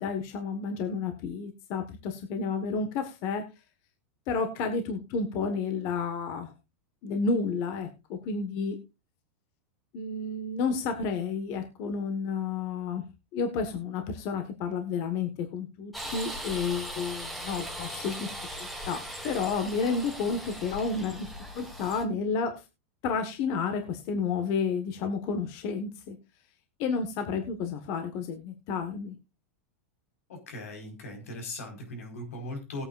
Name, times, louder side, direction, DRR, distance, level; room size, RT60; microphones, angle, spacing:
voice 1, 0.0-3.4 4.3-6.5 7.0-8.8 9.9-13.0 13.3-22.6 23.0-26.2 26.8-29.2, left 5 dB, 40° left, 7 dB, 1.5 m, -31 dB
sound 1, 15.9-22.0, equal, ahead, 1.6 m, -39 dB
voice 2, 30.3-32.8, left 1 dB, 90° left, 4 dB, 4.7 m, -39 dB
19.5 x 8.7 x 2.5 m, 0.26 s
supercardioid pair, 155°, 7 cm